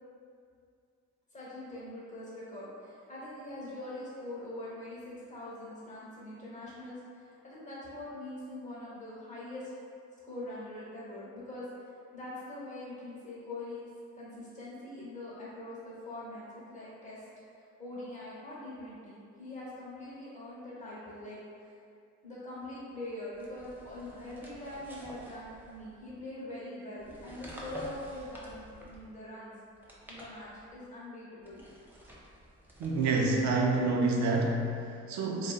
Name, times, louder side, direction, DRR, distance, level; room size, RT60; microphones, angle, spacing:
voice 1, 1.3-9.7 10.2-11.6 12.1-13.8 14.1-17.3 17.6-21.4 21.6-21.7 22.2-29.5 30.1-31.6, left 1 dB, 25° left, -8 dB, 1.0 m, -43 dB
sound 1, 23.3-26.1 27.0-29.2 29.7-30.9 31.4-34.3, equal, 5° right, 0.4 m, -50 dB
voice 2, 32.8-35.5, right 3 dB, 70° right, 0 dB, 0.5 m, -28 dB
2.5 x 2.4 x 2.3 m, 2.4 s
cardioid pair, 90°, 30 cm